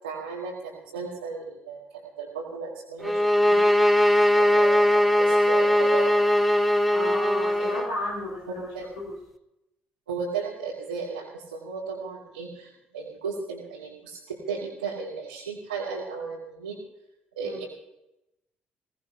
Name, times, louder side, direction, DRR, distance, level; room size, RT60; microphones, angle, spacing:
voice 1, 0.0-3.7 4.4-6.1 7.6-7.8 8.5-8.8 10.1-16.8 17.4-17.6, right 5 dB, 80° right, -6 dB, 2.5 m, -35 dB
sound 1, 3.0-7.9, left 1 dB, ahead, 1.1 m, -20 dB
voice 2, 6.9-8.7 9.0-9.1 17.4-17.6, left 1 dB, 70° left, -2 dB, 5.9 m, -33 dB
22.0 x 18.0 x 2.9 m, 0.88 s
figure-of-eight pair, 45°, 5 cm